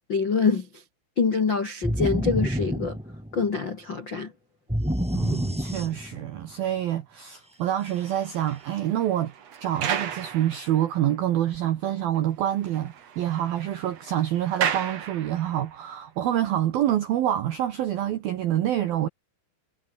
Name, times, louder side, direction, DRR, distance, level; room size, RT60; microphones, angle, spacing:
voice 1, 0.1-0.8 1.2-3.0 3.3-4.3, left 5 dB, 80° left, 1.0 m, -25 dB
sound 1, 1.8-3.6 4.7-6.4, equal, ahead, 2.5 m, -28 dB
voice 2, 5.1-9.3 9.6-19.1, right 12 dB, 70° right, 2.4 m, -26 dB
sound 2, 7.7-11.2 11.7-11.8 12.1-12.2 12.5-15.8, right 8 dB, 50° right, 2.1 m, -34 dB
omnidirectional pair, 5.9 m